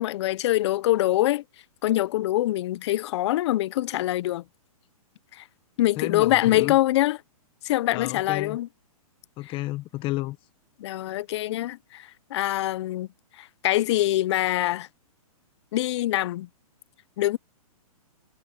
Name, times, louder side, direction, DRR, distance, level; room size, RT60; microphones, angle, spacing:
voice 1, 0.0-1.4 1.8-4.4 5.3-5.4 5.8-7.2 7.6-8.7 10.8-13.1 13.4-14.9 15.7-16.5 17.2-17.4, left 15 dB, 50° left, 0.7 m, -24 dB
voice 2, 6.0-6.7 7.9-8.6 9.4-10.4, left 18 dB, 25° left, 1.4 m, -31 dB
hypercardioid pair, 140°, 19 cm